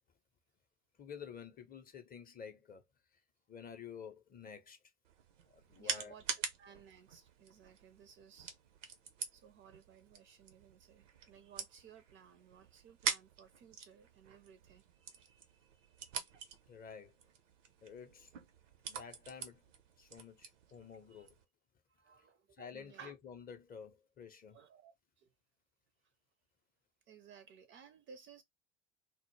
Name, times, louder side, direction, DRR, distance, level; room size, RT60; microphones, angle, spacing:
voice 1, 1.0-2.8 3.1-3.2 3.5-4.8 5.5-6.2 16.7-17.2 17.8-18.3 18.9-19.6 20.0-21.4 22.6-24.6, left 7 dB, 25° left, 0.5 m, -50 dB
sound 1, 5.0-21.4, right 6 dB, 85° right, 0.6 m, -45 dB
voice 2, 5.8-8.5 9.3-16.4 21.1-21.3 22.0-23.1 24.5-25.3 27.1-28.4, right 7 dB, 35° right, 0.4 m, -59 dB
2.0 x 2.0 x 3.0 m
hypercardioid pair, 70°, 36 cm